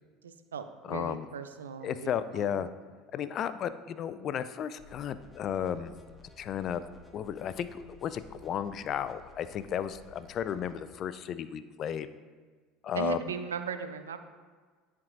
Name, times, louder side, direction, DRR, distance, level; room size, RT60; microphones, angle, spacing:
voice 1, 0.2-2.6 12.9-14.2, right 6 dB, 85° right, 9 dB, 0.4 m, -38 dB
voice 2, 0.9-1.3 1.8-2.7 3.1-5.9 6.4-6.8 7.1-12.1 12.8-13.2, left 9 dB, 45° left, 13 dB, 0.3 m, -34 dB
sound 1, 4.8-10.8, left 3 dB, 5° left, 1.1 m, -55 dB
10.0 x 4.6 x 2.5 m, 1.5 s
hypercardioid pair, 70°, 0 cm